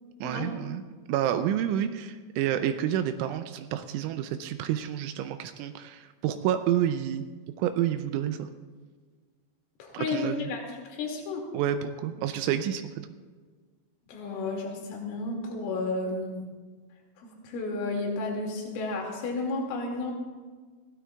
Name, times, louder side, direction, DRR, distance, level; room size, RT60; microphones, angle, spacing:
voice 1, 0.2-7.3 7.6-8.5 9.9-10.5 11.5-13.1, right 10 dB, 85° right, 8 dB, 3.0 m, -29 dB
voice 2, 9.8-10.6 10.9-11.4 14.1-16.4 17.2-20.1, left 3 dB, 75° left, 0 dB, 4.8 m, -32 dB
21.5 x 16.0 x 2.4 m, 1.4 s
omnidirectional pair, 5.7 m